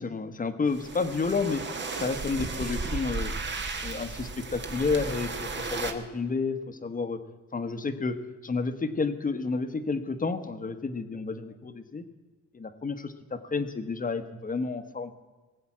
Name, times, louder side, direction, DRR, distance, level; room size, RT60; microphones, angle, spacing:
voice 1, 0.0-3.3 3.8-7.2 7.5-8.2 8.4-12.0 12.5-15.1, left 4 dB, 25° left, 9 dB, 1.2 m, -30 dB
sound 1, 0.7-5.9, right 3 dB, 35° right, 1.5 m, -34 dB
19.0 x 7.9 x 7.4 m, 1.3 s
cardioid pair, 90°, 30 cm